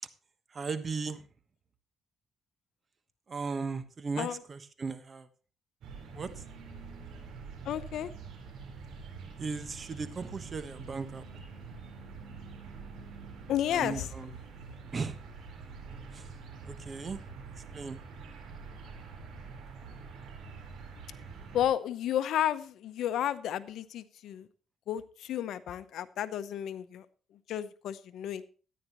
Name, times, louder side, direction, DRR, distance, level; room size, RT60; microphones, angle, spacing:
voice 1, 0.5-1.3 3.3-5.3 6.1-6.4 9.4-11.4 13.7-14.4 14.9-15.2 16.1-16.3 16.6-17.2 17.6-18.0, right 4 dB, 40° right, 11 dB, 1.2 m, -37 dB
sound 1, 5.8-21.7, right 4 dB, 75° right, 4.1 m, -46 dB
voice 2, 7.6-8.1 13.5-14.1 21.5-24.5 24.9-27.1 27.5-28.5, left 11 dB, 80° left, 14 dB, 0.8 m, -32 dB
13.5 x 10.5 x 3.0 m, 0.37 s
cardioid pair, 90°, 0 cm